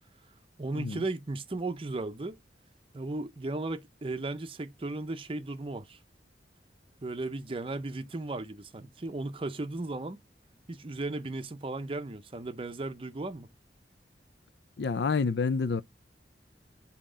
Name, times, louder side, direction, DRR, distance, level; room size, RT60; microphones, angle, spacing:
voice 1, 0.6-2.4 2.9-6.0 7.0-10.2 10.7-13.5, right 2 dB, 30° right, 0.6 m, -35 dB
voice 2, 14.8-15.8, left 5 dB, 65° left, 0.5 m, -28 dB
7.5 x 2.9 x 4.9 m
head